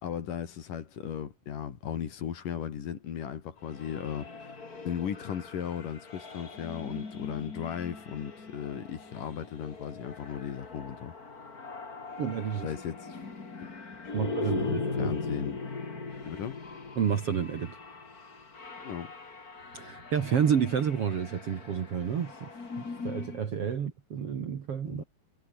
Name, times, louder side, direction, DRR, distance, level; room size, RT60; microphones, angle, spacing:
voice 1, 0.0-4.6 4.9-11.1 12.6-13.2 13.6-13.7 14.0-15.6 16.2-16.6 18.8-19.1 24.9-25.0, left 8 dB, 60° left, 3.7 m, -36 dB
sound 1, 3.6-23.5, left 4 dB, 25° left, 3.0 m, -40 dB
voice 2, 12.2-12.7 14.1-15.2 17.0-17.8 19.7-22.5 22.8-25.0, right 7 dB, 50° right, 2.2 m, -30 dB
omnidirectional pair, 4.5 m